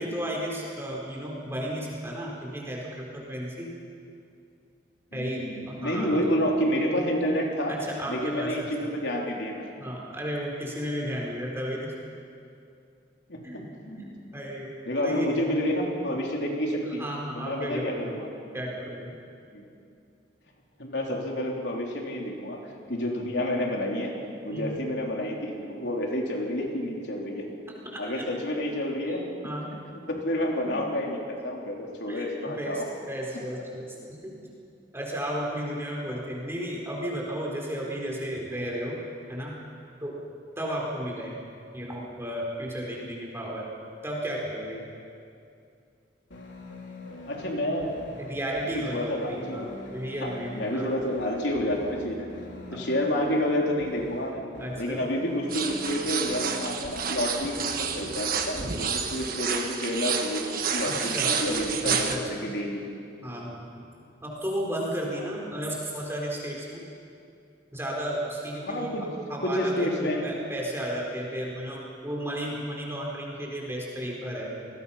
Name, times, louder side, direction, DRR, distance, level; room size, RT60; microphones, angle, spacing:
voice 1, 0.0-3.7 5.1-6.1 7.7-8.9 9.8-11.9 13.4-13.7 13.9-14.7 15.0-15.3 16.9-18.1 18.5-19.1 24.5-24.8 28.1-28.2 29.4-29.7 30.4-30.8 32.1-34.3 34.9-39.0 39.3-39.6 40.0-40.2 40.6-41.4 41.7-43.6 44.0-44.8 48.2-49.6 49.9-50.9 52.7-52.9 54.6-55.0 60.8-61.4 61.8-62.6 63.2-63.7 64.2-66.8 67.7-74.7, equal, 15° right, -3 dB, 4.4 m, -33 dB
voice 2, 5.1-7.7 8.1-9.7 13.3-14.1 14.8-17.0 17.3-18.3 19.5-19.7 20.8-22.6 22.9-24.1 24.4-27.5 28.0-29.3 30.1-32.9 47.3-48.0 48.9-49.7 50.2-52.3 52.7-54.4 54.8-62.8 68.7-69.1 69.4-70.3, left 1 dB, 65° left, -1 dB, 3.7 m, -29 dB
sound 1, 46.3-58.3, left 1 dB, 85° left, 3.5 m, -43 dB
sound 2, 55.5-62.2, right 6 dB, 50° right, 1.5 m, -30 dB
28.5 x 20.0 x 5.8 m, 2.5 s
head